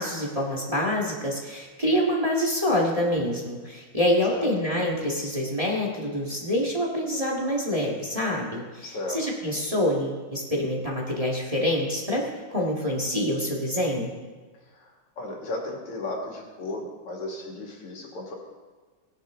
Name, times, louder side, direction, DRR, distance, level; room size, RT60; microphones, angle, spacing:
voice 1, 0.0-14.1, left 1 dB, 15° right, -2 dB, 1.7 m, -26 dB
voice 2, 8.8-9.2 14.7-18.4, left 2 dB, 85° left, -1 dB, 3.1 m, -35 dB
18.5 x 10.5 x 3.7 m, 1.4 s
omnidirectional pair, 2.4 m